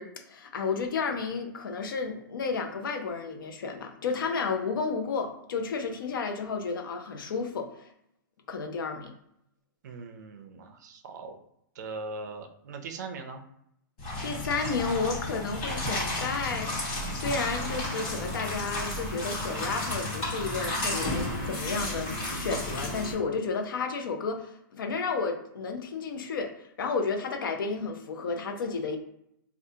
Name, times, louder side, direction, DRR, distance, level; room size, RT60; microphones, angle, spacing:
voice 1, 0.0-7.9 8.5-9.1 14.2-29.0, left 4 dB, 75° left, 5 dB, 0.6 m, -32 dB
voice 2, 9.8-11.4 11.7-13.4, right 3 dB, 55° right, 5 dB, 0.5 m, -40 dB
sound 1, 14.0-23.1, left 1 dB, 30° left, 1.3 m, -32 dB
3.5 x 2.4 x 2.7 m, 0.75 s
hypercardioid pair, 170°, 11 cm